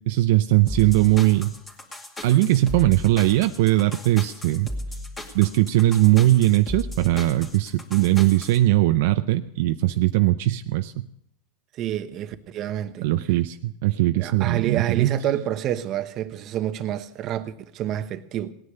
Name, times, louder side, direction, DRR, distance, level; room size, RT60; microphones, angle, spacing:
voice 1, 0.0-1.5 2.2-4.7 5.3-11.1 13.0-15.1, right 16 dB, 70° right, 0.5 m, -20 dB
sound 1, 0.7-8.6, left 1 dB, 15° left, 2.3 m, -36 dB
voice 2, 11.8-13.1 14.2-18.5, right 11 dB, 40° right, 1.0 m, -28 dB
18.0 x 9.8 x 6.7 m
supercardioid pair, 140°, 0 cm